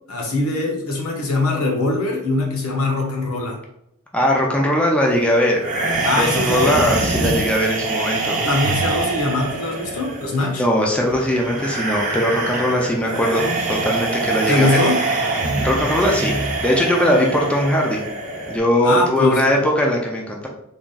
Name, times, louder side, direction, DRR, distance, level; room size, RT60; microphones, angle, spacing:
voice 1, 0.1-3.6 6.0-6.8 8.4-10.6 14.5-15.0 18.8-19.6, left 2 dB, 70° left, 0 dB, 1.0 m, -22 dB
voice 2, 4.1-5.6 6.2-8.4 10.6-14.8 15.6-18.0 18.5-20.5, equal, 5° left, -1 dB, 0.4 m, -20 dB
sound 1, 5.6-18.6, right 3 dB, 35° right, 0.8 m, -24 dB
3.5 x 2.4 x 3.8 m, 0.79 s
head